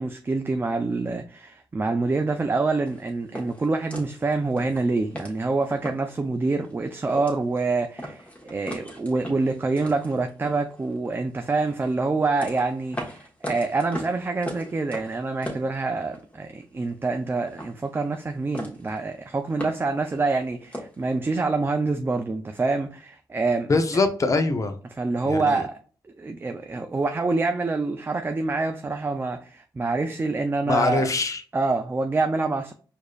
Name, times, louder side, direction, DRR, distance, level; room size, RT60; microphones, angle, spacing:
voice 1, 0.0-23.7 25.0-25.8 26.2-31.1 31.5-32.7, right 3 dB, 25° right, 0.4 m, -26 dB
sound 1, 2.9-6.2 6.6-6.7 7.0-7.7 8.0-11.1 11.6-16.4 16.6-17.2 17.5-18.3 18.5-19.0 19.3-21.0, equal, 15° left, 1.3 m, -38 dB
voice 2, 23.7-24.7 25.2-25.6 30.7-31.4, left 3 dB, 40° left, 0.7 m, -23 dB
4.7 x 2.6 x 2.3 m
cardioid pair, 60°, 8 cm